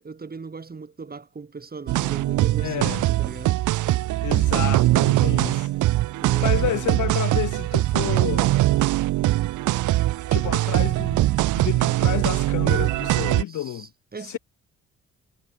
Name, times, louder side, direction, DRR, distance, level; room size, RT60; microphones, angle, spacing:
voice 1, 0.0-3.6 6.2-7.0 13.5-14.4, right 4 dB, 30° right, 5.2 m, -38 dB
sound 1, 1.9-13.4, right 16 dB, 85° right, 1.1 m, -22 dB
voice 2, 2.6-3.0 4.2-5.7 6.4-8.6 10.3-11.2 11.5-13.9 14.2-14.4, left 12 dB, 75° left, 4.9 m, -30 dB
cardioid pair, 90°, 30 cm